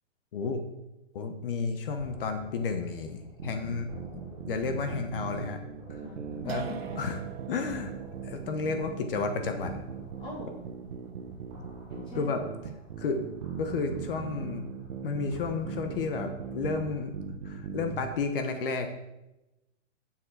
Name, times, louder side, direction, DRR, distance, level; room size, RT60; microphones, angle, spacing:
voice 1, 0.3-0.6 1.1-4.2 4.5-5.6 6.4-6.7 7.0-7.2 7.5-7.9 8.2-9.8 11.6-11.7 12.2-12.4 13.0-13.3 13.6-14.6 15.0-17.1 17.4-18.9, left 4 dB, 50° left, 6 dB, 1.2 m, -32 dB
sound 1, 2.0-17.2, right 2 dB, 20° right, 3.1 m, -51 dB
sound 2, 3.4-18.1, right 7 dB, 80° right, 1.2 m, -40 dB
voice 2, 6.0-7.0 10.2-10.6 11.9-12.4, left 2 dB, 15° left, -3 dB, 2.3 m, -42 dB
sound 3, 6.5-13.4, right 10 dB, 55° right, 0.7 m, -46 dB
7.5 x 6.4 x 6.5 m, 0.94 s
hypercardioid pair, 170°, 36 cm